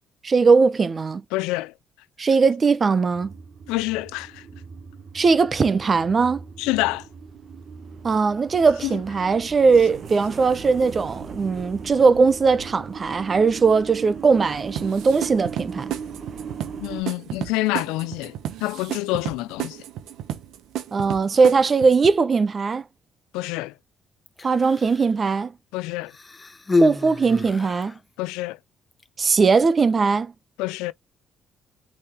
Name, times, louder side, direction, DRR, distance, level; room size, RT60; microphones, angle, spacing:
voice 1, 0.2-1.2 2.2-3.3 5.1-6.4 8.0-15.9 20.9-22.8 24.4-25.5 26.8-28.0 29.2-30.3, right 4 dB, 40° right, 0.8 m, -19 dB
voice 2, 1.3-1.7 3.7-4.4 6.6-7.1 8.8-8.9 16.8-18.3 18.6-19.8 23.3-23.7 25.7-26.1 28.2-28.6 30.6-30.9, left 19 dB, 90° left, 0.3 m, -27 dB
sound 1, 3.1-17.0, right 6 dB, 60° right, 1.5 m, -38 dB
sound 2, 14.8-22.1, right 11 dB, 80° right, 0.9 m, -33 dB
Human voice, 24.3-25.2 26.1-28.0 28.9-29.1, left 3 dB, 25° left, 1.0 m, -28 dB
8.5 x 4.3 x 3.0 m
supercardioid pair, 60°, 0 cm